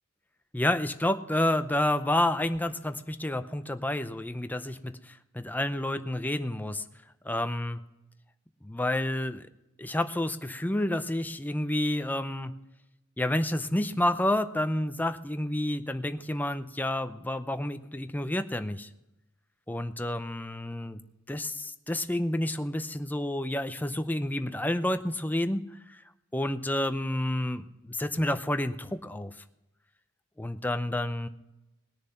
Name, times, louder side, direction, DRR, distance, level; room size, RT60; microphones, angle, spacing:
voice 1, 0.5-6.8 7.2-7.8 8.6-9.5 9.8-12.5 13.2-18.9 19.7-21.0 21.3-26.0 26.3-29.3 30.4-31.3, left 1 dB, 10° left, 9 dB, 0.6 m, -29 dB
20.0 x 6.8 x 5.7 m, 0.91 s
head